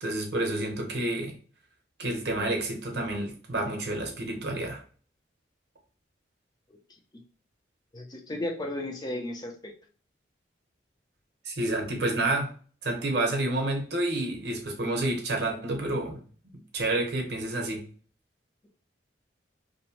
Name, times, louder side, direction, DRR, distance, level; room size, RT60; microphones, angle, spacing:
voice 1, 0.0-1.4 2.0-4.8 11.4-12.5 12.8-16.2 16.7-17.8, right 2 dB, 60° right, 2 dB, 0.7 m, -29 dB
voice 2, 7.9-9.5, left 1 dB, 20° left, 3 dB, 0.4 m, -34 dB
2.6 x 2.1 x 2.8 m, 0.41 s
head